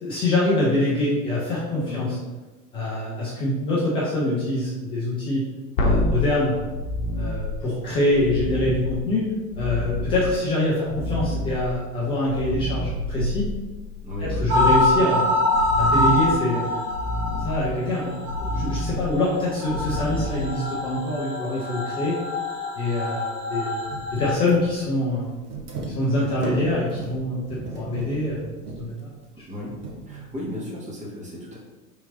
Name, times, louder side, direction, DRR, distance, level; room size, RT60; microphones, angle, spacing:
voice 1, 0.0-2.2 2.7-5.4 5.8-6.6 7.1-9.2 9.6-13.5 14.2-15.3 15.8-16.7 17.4-18.1 18.5-22.2 22.8-23.7 24.1-25.2 25.9-28.4 28.8-29.1, left 1 dB, 15° left, -7 dB, 0.3 m, -24 dB
sound 1, 5.8-21.1 24.2-24.3, left 1 dB, 55° left, 0.9 m, -29 dB
voice 2, 14.0-14.4 29.3-29.7 30.1-31.6, left 1 dB, 15° right, -3 dB, 1.1 m, -35 dB
sound 2, 14.5-24.3, left 2 dB, 40° right, 1.0 m, -25 dB
sound 3, 23.8-30.5, right 3 dB, 70° right, 1.0 m, -36 dB
3.6 x 2.9 x 3.7 m, 1.2 s
figure-of-eight pair, 90°, 48 cm